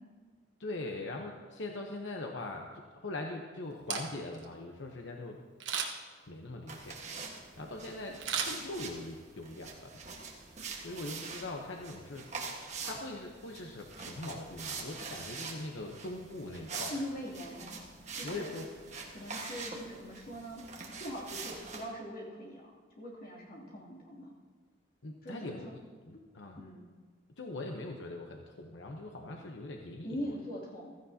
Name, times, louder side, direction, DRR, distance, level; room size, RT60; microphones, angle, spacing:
voice 1, 0.6-5.4 6.3-9.9 10.6-12.3 12.9-17.0 18.2-18.7 25.0-25.7 26.1-26.6 27.4-30.4, left 2 dB, 85° left, 1 dB, 0.9 m, -42 dB
Camera, 3.7-4.5 5.6-6.2 8.2-9.1 9.6-9.7, right 6 dB, 90° right, 1.3 m, -36 dB
sound 1, 6.7-21.8, right 4 dB, 40° right, 1.5 m, -44 dB
voice 2, 16.9-17.8 18.1-18.5 19.1-20.6 21.0-24.3 25.2-25.7 26.6-26.8 30.0-30.9, equal, 50° left, -4 dB, 2.8 m, -42 dB
15.5 x 14.5 x 2.8 m, 1.5 s
head